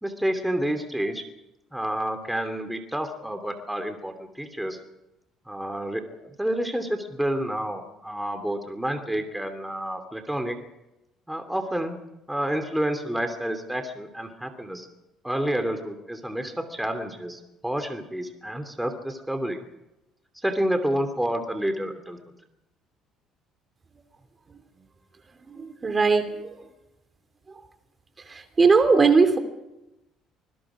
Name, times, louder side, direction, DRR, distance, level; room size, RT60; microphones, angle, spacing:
voice 1, 0.0-1.2 1.7-4.8 5.5-10.6 11.3-12.0 12.3-14.9 15.2-19.6 20.4-22.2, right 1 dB, 5° right, 7 dB, 2.8 m, -29 dB
voice 2, 25.5-26.5 28.3-29.4, right 4 dB, 30° right, 8 dB, 2.9 m, -20 dB
26.0 x 21.0 x 5.0 m, 0.94 s
supercardioid pair, 90°, 0 cm